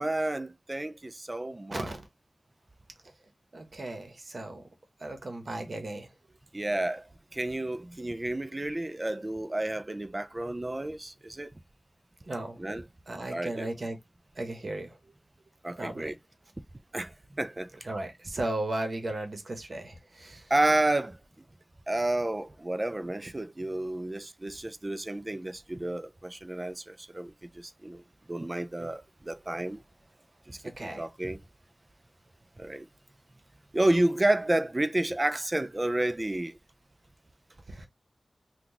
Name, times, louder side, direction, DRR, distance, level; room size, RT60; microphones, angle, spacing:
voice 1, 0.0-1.9 6.5-7.1 7.3-11.5 12.6-12.8 13.3-13.7 15.6-16.1 16.9-17.7 20.5-21.2 21.9-28.0 28.3-29.8 30.5-31.4 32.6-32.9 33.7-36.6, right 1 dB, 30° right, 0.4 m, -30 dB
voice 2, 1.7-2.1 3.5-4.6 5.0-6.1 12.2-12.6 13.1-14.0 14.4-15.0 15.8-16.1 17.8-20.5 28.8-28.9 30.6-31.1 37.7-37.9, right 2 dB, 55° right, 0.9 m, -36 dB
2.9 x 2.3 x 3.7 m
wide cardioid pair, 60°, 0 cm